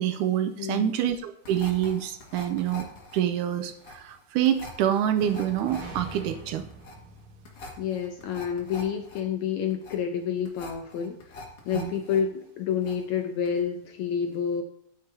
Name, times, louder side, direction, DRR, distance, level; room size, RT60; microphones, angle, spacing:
voice 1, 0.0-2.9 3.1-6.6 11.7-11.9, right 10 dB, 80° right, 9 dB, 2.0 m, -26 dB
voice 2, 0.6-1.0 7.8-14.6, left 7 dB, 75° left, 5 dB, 1.8 m, -29 dB
sound 1, 1.4-12.2 12.5-13.2 13.5-13.6, left 2 dB, 50° left, 2.5 m, -44 dB
sound 2, 5.2-9.1, right 2 dB, 40° right, 2.5 m, -45 dB
12.5 x 9.5 x 2.7 m, 0.68 s
omnidirectional pair, 3.9 m